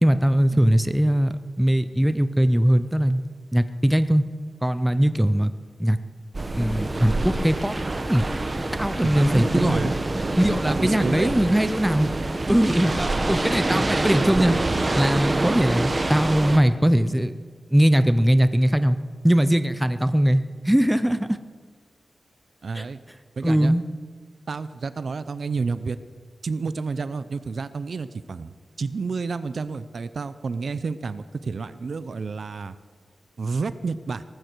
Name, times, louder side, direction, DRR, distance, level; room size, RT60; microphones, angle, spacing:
voice 1, 0.0-3.2 3.5-4.3 4.6-5.5 5.8-6.0 6.6-7.8 8.1-8.3 8.7-9.9 10.4-12.1 12.5-14.6 15.0-17.3 17.7-19.0 19.2-21.4 22.8-22.9 23.4-23.8, equal, 5° right, 11 dB, 0.5 m, -20 dB
sound 1, 6.3-16.6, right 2 dB, 25° right, 0.9 m, -26 dB
voice 2, 9.1-9.9 10.7-11.3 22.6-23.0 23.4-23.7 24.5-26.0 26.4-32.8 33.4-34.2, right 4 dB, 50° right, 14 dB, 0.5 m, -30 dB
18.5 x 14.5 x 4.6 m, 1.6 s
wide cardioid pair, 175°, 0 cm